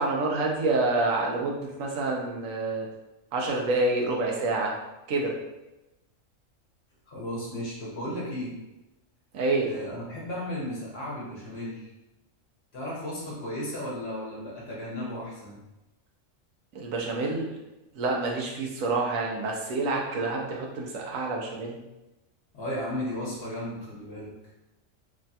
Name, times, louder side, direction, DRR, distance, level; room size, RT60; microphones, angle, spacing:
voice 1, 0.0-2.9 3.3-4.7 5.1-5.3 9.3-9.7 16.7-17.5 17.9-21.8, right 3 dB, 90° right, 0 dB, 1.0 m, -27 dB
voice 2, 7.1-8.5 9.7-11.9 12.7-15.6 22.5-24.3, left 1 dB, 55° left, -5 dB, 1.1 m, -35 dB
3.2 x 2.2 x 2.6 m, 0.98 s
omnidirectional pair, 1.3 m